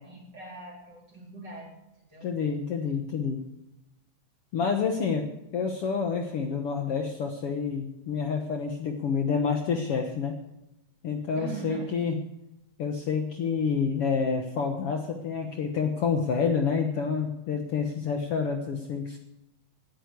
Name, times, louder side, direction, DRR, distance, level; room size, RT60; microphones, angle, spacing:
voice 1, 0.0-2.3 4.9-5.1 11.4-12.0, right 3 dB, 35° right, -1 dB, 4.3 m, -42 dB
voice 2, 2.2-3.4 4.5-5.3 5.5-10.4 11.0-12.2 12.8-19.2, left 5 dB, 55° left, 4 dB, 1.9 m, -28 dB
17.0 x 10.5 x 4.6 m, 0.91 s
omnidirectional pair, 3.5 m